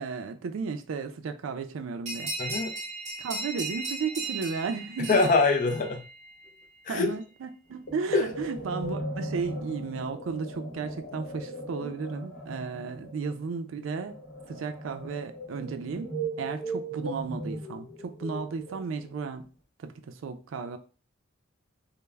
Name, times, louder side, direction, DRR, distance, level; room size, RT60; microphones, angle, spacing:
voice 1, 0.0-2.3 3.2-5.2 6.9-14.1 14.5-16.1 16.4-19.5 19.8-20.8, right 5 dB, 80° right, 0.4 m, -34 dB
sound 1, 2.1-6.3, right 2 dB, 35° right, 1.0 m, -36 dB
voice 2, 2.4-2.7 5.1-6.0 6.9-7.1 8.1-8.3, left 3 dB, 40° left, 0.3 m, -23 dB
sound 2, 7.9-19.2, right 1 dB, 55° left, 0.9 m, -38 dB
2.2 x 2.0 x 3.1 m
head